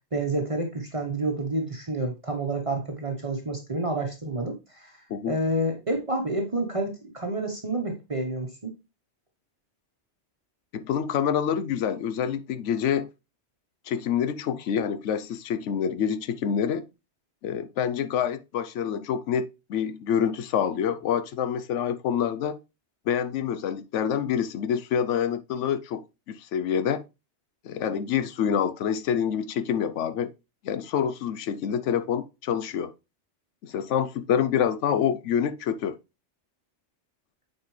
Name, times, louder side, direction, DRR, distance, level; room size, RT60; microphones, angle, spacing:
voice 1, 0.1-5.0 5.3-8.7, right 2 dB, 30° right, 1.0 m, -29 dB
voice 2, 10.7-13.1 13.9-16.9 17.4-22.6 23.1-27.0 27.6-30.3 30.6-32.9 33.6-36.0, left 8 dB, 85° left, 1.0 m, -27 dB
8.5 x 4.3 x 3.2 m
omnidirectional pair, 1.2 m